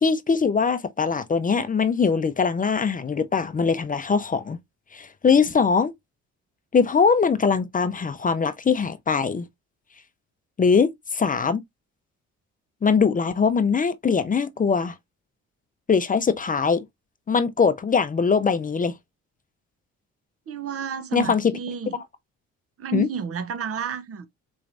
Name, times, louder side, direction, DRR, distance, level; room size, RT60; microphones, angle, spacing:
voice 1, 0.0-4.6 4.9-5.9 6.7-9.4 10.6-11.6 12.8-14.9 15.9-16.8 17.3-18.9 21.1-21.5 22.9-23.1, left 5 dB, 25° left, 0.5 m, -21 dB
voice 2, 20.5-22.0 22.8-24.3, right 7 dB, 50° right, 0.7 m, -31 dB
4.5 x 3.1 x 2.5 m
cardioid pair, 90°, 30 cm